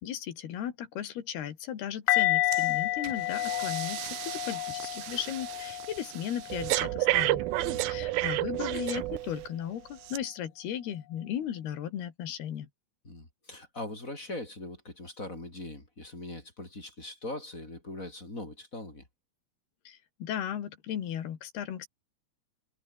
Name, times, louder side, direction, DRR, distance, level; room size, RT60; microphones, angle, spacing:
voice 1, 0.0-7.4 7.8-12.7 19.9-21.9, left 10 dB, 70° left, 4.2 m, -36 dB
sound 1, 2.1-7.0 7.7-7.9, left 16 dB, 90° left, 1.9 m, -30 dB
Breathing, 2.5-2.7 3.0-9.5 10.0-10.2, right 18 dB, 80° right, 2.2 m, -32 dB
voice 2, 7.6-7.9 13.0-19.0, left 2 dB, 20° left, 5.3 m, -41 dB
omnidirectional pair, 4.9 m